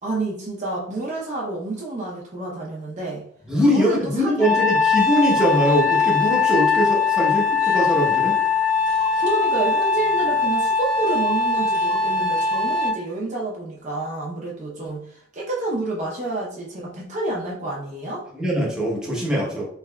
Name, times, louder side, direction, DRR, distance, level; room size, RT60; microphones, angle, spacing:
voice 1, 0.0-3.2 3.7-4.6 9.2-18.2, right 2 dB, 40° right, -4 dB, 0.7 m, -29 dB
voice 2, 3.5-8.4 18.3-19.7, equal, 5° right, -5 dB, 0.9 m, -22 dB
Trumpet, 4.4-13.0, left 4 dB, 70° left, 1.3 m, -21 dB
sound 1, 5.0-12.9, right 1 dB, 45° left, 1.4 m, -41 dB
3.6 x 3.2 x 2.2 m, 0.64 s
head